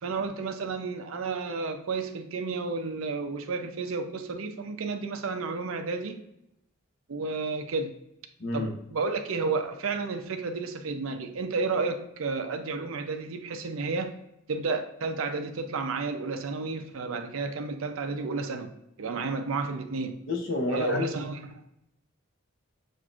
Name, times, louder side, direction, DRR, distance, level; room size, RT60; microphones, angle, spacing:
voice 1, 0.0-6.2 7.1-7.9 8.5-14.1 14.5-18.7 19.0-20.2 20.7-21.6, right 4 dB, 75° right, 6 dB, 0.5 m, -31 dB
voice 2, 8.4-8.7 20.3-21.2, left 2 dB, 60° left, 1 dB, 0.8 m, -29 dB
7.3 x 2.6 x 2.4 m, 0.82 s
head